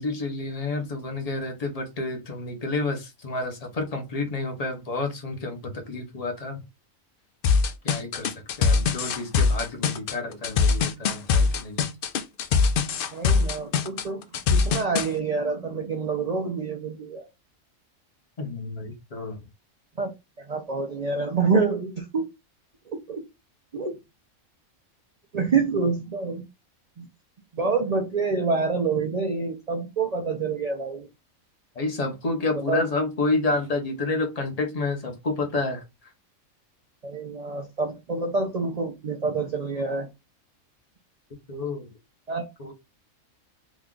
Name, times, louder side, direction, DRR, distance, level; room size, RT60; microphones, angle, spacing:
voice 1, 0.0-5.6 5.9-6.6 7.8-11.9 18.4-19.4 31.7-35.8 41.5-41.9 42.6-42.7, left 3 dB, 35° left, 0.7 m, -29 dB
sound 1, 7.4-15.1, left 5 dB, 80° left, 0.5 m, -22 dB
voice 2, 13.1-14.2 14.5-17.3 20.0-20.1 20.5-22.2 23.1-23.2 23.7-24.0 25.3-26.4 27.0-27.1 27.5-31.1 32.7-32.8 37.0-40.1 42.3-42.4, right 4 dB, 85° right, 0.3 m, -27 dB
2.9 x 2.3 x 3.7 m
omnidirectional pair, 1.5 m